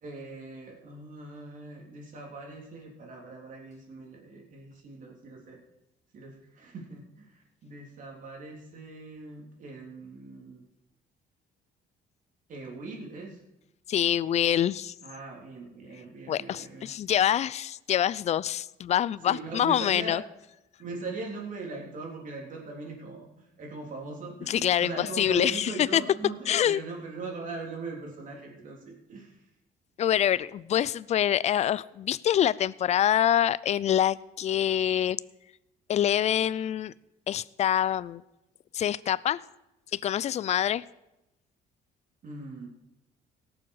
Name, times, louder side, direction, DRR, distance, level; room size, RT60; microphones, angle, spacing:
voice 1, 0.0-5.6 6.1-10.6 12.5-13.4 15.0-16.9 19.2-20.2 20.8-29.3 42.2-42.7, right 3 dB, 50° right, -1 dB, 3.4 m, -40 dB
voice 2, 13.9-14.9 16.3-20.2 24.5-26.0 26.5-26.8 30.0-35.2 35.9-36.9 37.3-38.2 38.7-39.4 39.9-40.8, left 10 dB, 40° left, 20 dB, 0.4 m, -25 dB
18.0 x 7.1 x 4.8 m, 0.92 s
cardioid pair, 110°, 17 cm